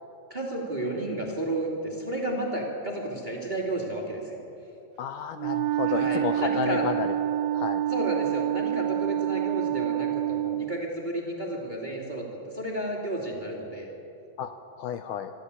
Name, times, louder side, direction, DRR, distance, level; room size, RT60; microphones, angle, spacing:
voice 1, 0.3-4.4 5.9-6.9 7.9-13.9, right 1 dB, 15° right, -1 dB, 2.1 m, -32 dB
voice 2, 5.0-7.1 7.5-7.8 14.4-14.5 14.8-15.3, left 8 dB, 80° left, 8 dB, 2.0 m, -31 dB
Wind instrument woodwind instrument, 5.4-10.8, right 12 dB, 85° right, 2.4 m, -27 dB
26.0 x 13.0 x 8.3 m, 2.9 s
omnidirectional pair, 4.1 m